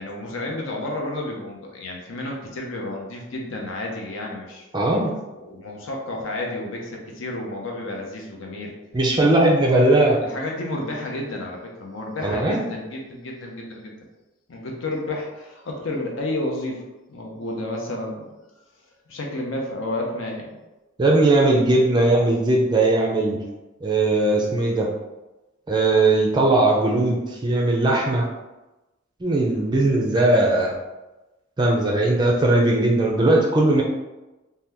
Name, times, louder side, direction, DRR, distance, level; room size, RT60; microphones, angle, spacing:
voice 1, 0.0-4.7 5.3-8.7 10.2-13.9 14.5-16.8 17.1-18.3 19.1-20.6, left 1 dB, 70° left, 0 dB, 0.6 m, -31 dB
voice 2, 4.7-5.1 8.9-10.2 12.2-12.6 21.0-23.4 23.8-24.9 25.7-28.3 29.2-30.7 31.6-33.8, right 2 dB, 20° right, -1 dB, 0.4 m, -19 dB
2.8 x 2.2 x 3.4 m, 1.1 s
head